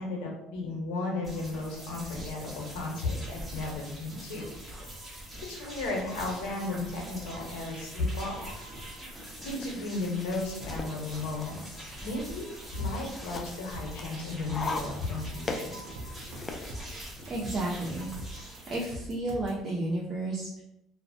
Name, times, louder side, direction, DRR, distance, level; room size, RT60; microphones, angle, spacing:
voice 1, 0.0-4.5 5.5-8.6 9.0-9.1 9.4-12.5 12.7-15.7, left 2 dB, 90° left, 0 dB, 0.7 m, -34 dB
sound 1, 1.2-18.9, equal, 15° right, 1.0 m, -43 dB
sound 2, 8.9-16.7, left 3 dB, 30° left, 0.3 m, -41 dB
sound 3, 13.7-19.6, right 1 dB, 90° right, 0.4 m, -43 dB
voice 2, 16.9-18.1 18.6-20.6, right 2 dB, 40° right, -4 dB, 0.5 m, -32 dB
2.4 x 2.1 x 2.5 m, 0.84 s
supercardioid pair, 95°, 0 cm